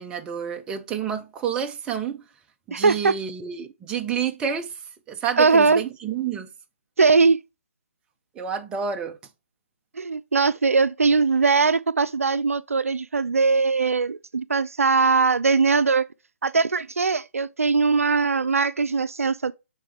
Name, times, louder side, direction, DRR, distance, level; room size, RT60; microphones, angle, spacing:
voice 1, 0.0-2.2 2.7-4.7 5.1-6.5 8.3-9.2, right 7 dB, 10° right, 0.5 m, -29 dB
voice 2, 2.7-3.1 5.4-5.8 7.0-7.4 10.0-16.1 16.4-19.5, right 4 dB, 90° right, 0.4 m, -20 dB
8.7 x 3.6 x 3.3 m
figure-of-eight pair, 150°, 7 cm